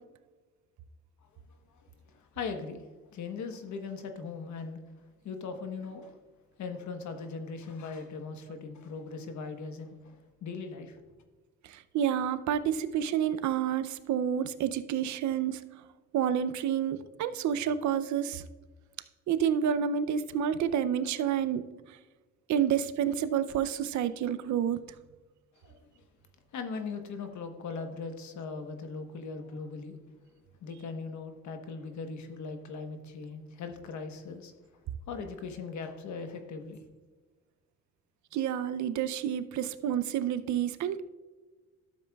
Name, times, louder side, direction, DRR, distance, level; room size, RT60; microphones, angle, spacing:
voice 1, 2.1-2.8 3.1-4.8 5.2-6.2 6.6-11.1 25.6-26.1 26.5-29.9 30.2-30.3 30.6-34.5 35.1-36.8, left 4 dB, 70° left, 1.2 m, -39 dB
voice 2, 11.7-15.6 16.1-18.4 19.3-21.6 22.5-24.8 38.3-41.0, right 9 dB, 70° right, 0.6 m, -29 dB
12.5 x 7.4 x 2.3 m
cardioid pair, 90°, 30 cm